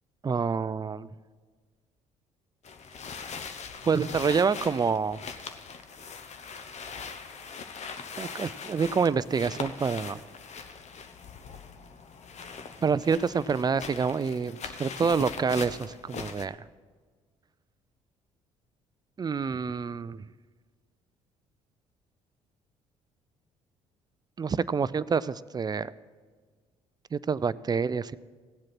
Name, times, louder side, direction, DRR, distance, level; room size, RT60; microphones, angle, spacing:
voice 1, 0.2-1.1 3.8-5.2 8.2-10.2 12.8-16.6 19.2-20.3 24.4-25.9 27.1-28.2, right 5 dB, 25° right, 18 dB, 0.4 m, -27 dB
sound 1, 2.6-16.4, left 5 dB, 50° left, 1.0 m, -41 dB
16.5 x 7.6 x 6.0 m, 1.5 s
hypercardioid pair, 55°, 15 cm